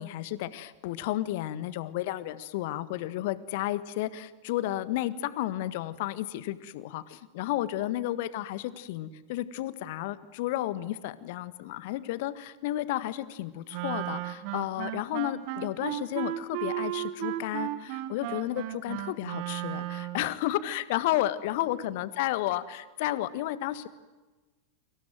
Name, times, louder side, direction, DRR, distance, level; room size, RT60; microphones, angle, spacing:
voice 1, 0.0-23.9, left 14 dB, 50° left, 15 dB, 1.5 m, -32 dB
Wind instrument woodwind instrument, 13.7-20.3, right 15 dB, 45° right, 1.9 m, -34 dB
30.0 x 25.5 x 7.7 m, 1.2 s
figure-of-eight pair, 90°, 0 cm